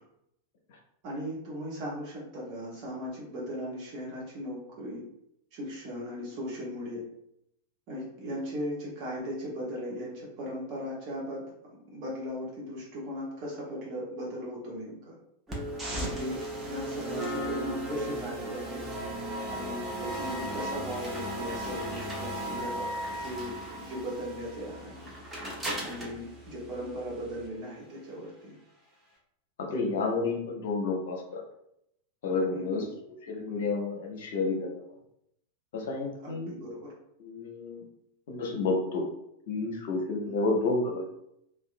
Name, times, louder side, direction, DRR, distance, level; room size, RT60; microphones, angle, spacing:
voice 1, 1.0-5.0 5.5-7.0 7.9-11.5 11.9-15.2 15.9-18.8 19.5-22.9 23.2-25.1 25.8-28.5 32.5-32.9 36.2-36.9 40.2-40.5, equal, 40° right, -5 dB, 0.9 m, -38 dB
sound 1, 15.5-27.5, right 1 dB, 15° right, 0.7 m, -36 dB
voice 2, 29.6-31.4 32.2-32.8 33.3-34.8 35.7-36.5 37.2-37.8 38.3-39.1 39.5-41.1, left 3 dB, 55° left, 1 dB, 0.6 m, -30 dB
2.6 x 2.1 x 2.5 m, 0.78 s
figure-of-eight pair, 90°, 0 cm